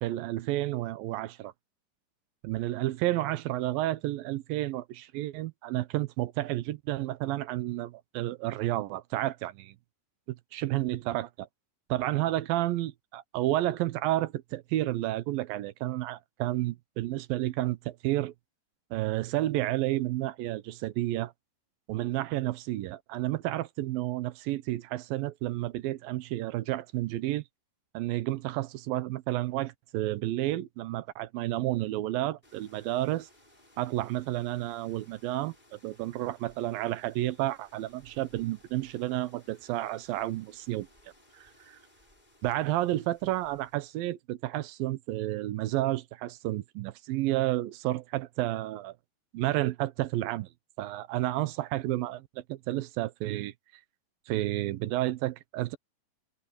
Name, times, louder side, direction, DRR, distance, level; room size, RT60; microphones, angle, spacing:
voice 1, 0.0-1.5 2.4-9.8 10.3-11.5 11.9-18.3 18.9-21.3 21.9-27.4 27.9-33.3 33.8-40.9 41.3-41.8 42.4-49.0 49.3-50.5 50.8-53.5 54.3-55.8, right 16 dB, 90° right, 2.7 m, -31 dB
sound 1, 32.4-44.1, left 1 dB, 10° left, 7.6 m, -61 dB
omnidirectional pair, 4.0 m